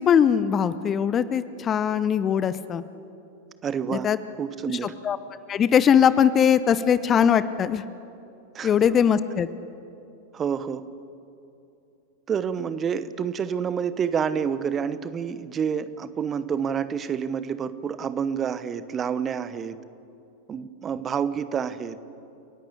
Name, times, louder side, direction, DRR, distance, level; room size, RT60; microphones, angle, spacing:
voice 1, 0.0-2.8 3.9-4.2 4.8-5.2 5.5-7.8 8.6-9.5, left 8 dB, 25° left, 15 dB, 0.7 m, -21 dB
voice 2, 3.6-4.1 4.4-4.9 8.5-8.8 10.3-10.8 12.3-19.8 20.5-22.0, right 7 dB, 25° right, 14 dB, 0.9 m, -28 dB
29.5 x 11.5 x 8.5 m, 2.7 s
figure-of-eight pair, 90°, 0 cm